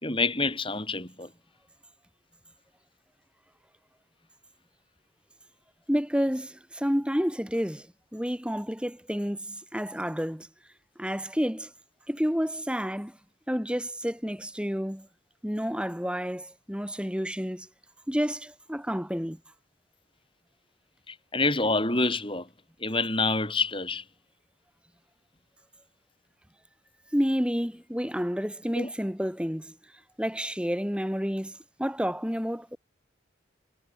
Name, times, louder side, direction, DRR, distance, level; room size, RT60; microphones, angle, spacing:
voice 1, 0.0-1.3 21.1-22.5 22.8-24.0 28.7-28.9, left 3 dB, 25° left, 5.9 m, -27 dB
voice 2, 5.9-7.9 8.1-10.5 11.0-11.7 12.1-13.2 13.5-15.1 15.4-17.7 18.1-19.4 27.1-29.8 30.2-32.8, equal, 5° right, 2.4 m, -30 dB
head